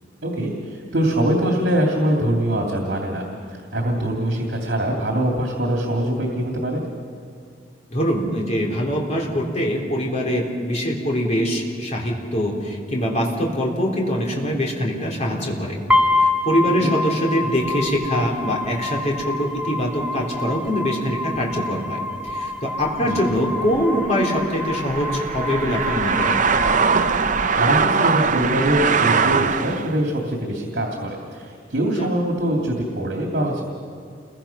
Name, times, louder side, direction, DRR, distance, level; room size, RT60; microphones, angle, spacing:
voice 1, 0.2-6.8 16.8-16.9 23.1-23.2 27.6-33.6, right 1 dB, 70° right, 0 dB, 2.8 m, -23 dB
voice 2, 7.9-15.8 16.1-22.0 22.2-26.4 32.0-32.1, equal, 40° left, -1 dB, 3.9 m, -23 dB
sound 1, 15.9-27.9, left 2 dB, 10° right, 1.7 m, -27 dB
sound 2, 22.8-30.0, right 5 dB, 45° right, 0.7 m, -22 dB
29.0 x 22.0 x 6.0 m, 2.2 s
head